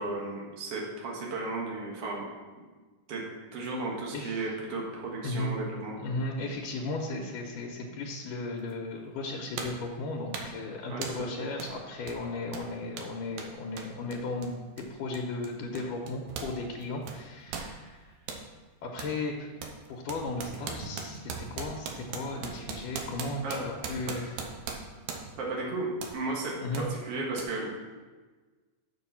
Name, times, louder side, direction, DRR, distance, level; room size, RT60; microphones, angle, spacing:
voice 1, 0.0-2.2 3.1-3.2 3.5-6.0 10.9-11.3 23.4-23.6 24.0-24.1 25.4-25.9 26.1-27.7, right 3 dB, 50° right, -2 dB, 2.4 m, -34 dB
voice 2, 4.1-4.5 5.2-5.6 6.0-18.2 18.8-19.5 19.9-24.4 26.6-26.9, left 2 dB, 90° left, 0 dB, 2.5 m, -35 dB
sound 1, 8.7-8.8 9.6-9.9 10.3-10.6 11.0-11.3 11.6-11.8 12.0-16.6 16.8-18.5 19.0-19.2 19.6-25.5 26.0-26.2 26.7-26.9 27.4-27.5, right 5 dB, 75° right, 2.2 m, -40 dB
6.9 x 6.8 x 5.8 m, 1.3 s
omnidirectional pair, 3.7 m